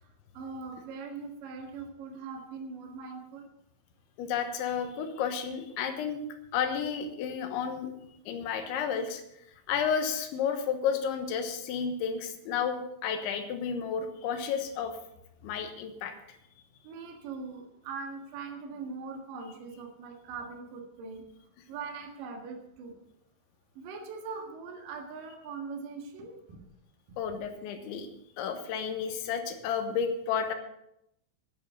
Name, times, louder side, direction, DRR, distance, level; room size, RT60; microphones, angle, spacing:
voice 1, 0.0-3.5 16.8-21.2 21.7-23.0 23.7-26.6 27.1-27.4, right 4 dB, 55° right, 3 dB, 2.7 m, -41 dB
voice 2, 4.2-6.2 6.5-7.9 8.3-9.2 9.7-14.9 15.4-16.1 27.2-28.1 28.4-30.5, left 7 dB, 80° left, 7 dB, 3.4 m, -31 dB
10.5 x 10.0 x 6.8 m, 0.80 s
omnidirectional pair, 5.5 m